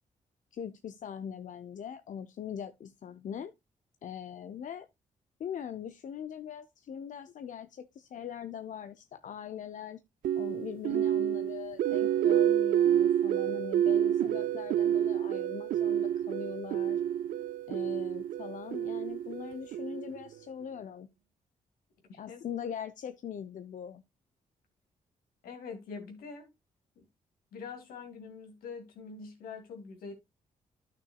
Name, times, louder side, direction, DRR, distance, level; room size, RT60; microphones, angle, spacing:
voice 1, 0.5-3.5 4.0-4.9 5.4-10.0 10.4-17.0 17.7-21.1 22.2-24.0, left 8 dB, 60° left, 0.6 m, -41 dB
sound 1, 10.2-20.3, right 10 dB, 75° right, 0.4 m, -29 dB
voice 2, 22.1-22.4 25.4-26.5 27.0-27.1 27.5-30.1, left 5 dB, 85° left, 2.5 m, -44 dB
12.5 x 6.1 x 2.3 m
supercardioid pair, 50°, 15 cm